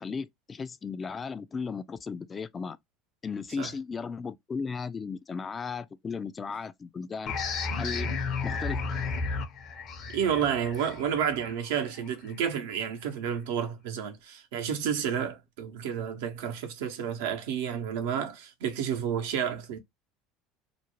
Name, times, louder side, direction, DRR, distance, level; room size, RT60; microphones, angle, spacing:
voice 1, 0.0-2.8 3.2-7.3 7.8-8.1 8.4-8.8, left 5 dB, 30° left, 0.3 m, -35 dB
sound 1, 7.3-12.6, left 4 dB, 55° left, 0.7 m, -33 dB
voice 2, 10.1-19.8, right 8 dB, 80° right, 0.7 m, -30 dB
2.5 x 2.1 x 2.9 m
hypercardioid pair, 85°, 0 cm